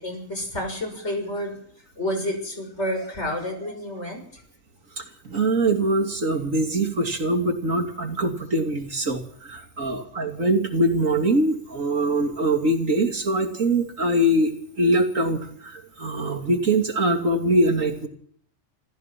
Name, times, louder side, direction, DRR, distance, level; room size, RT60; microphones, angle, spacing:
voice 1, 0.0-1.6 2.0-4.4, left 1 dB, 60° left, 4 dB, 7.1 m, -29 dB
voice 2, 5.2-9.2 9.5-14.5 14.8-18.1, right 1 dB, 85° right, 4 dB, 3.1 m, -23 dB
27.0 x 16.0 x 6.1 m, 0.63 s
omnidirectional pair, 1.3 m